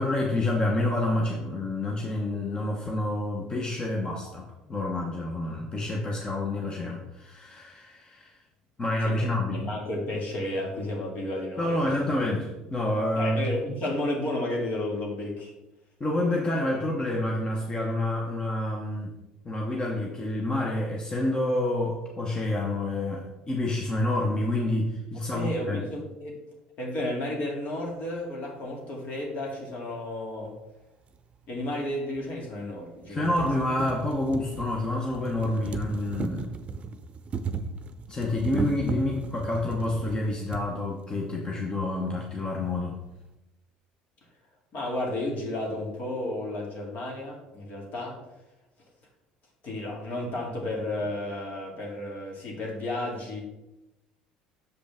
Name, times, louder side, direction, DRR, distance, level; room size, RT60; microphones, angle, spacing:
voice 1, 0.0-8.3 8.8-9.6 11.6-13.4 16.0-19.1 19.4-25.8 33.1-36.6 38.1-43.0, left 1 dB, 25° left, -1 dB, 1.1 m, -28 dB
voice 2, 9.0-12.0 13.1-15.5 25.3-26.3 26.8-30.5 31.5-33.4 44.7-48.2 49.6-53.4, left 1 dB, 55° left, -1 dB, 2.3 m, -32 dB
sound 1, 31.1-31.2 32.2-32.3 32.7-32.8 33.1-40.7 41.6-41.7 41.9-42.0, right 4 dB, 40° right, 0.6 m, -35 dB
6.8 x 5.1 x 3.6 m, 0.95 s
supercardioid pair, 85°, 3 cm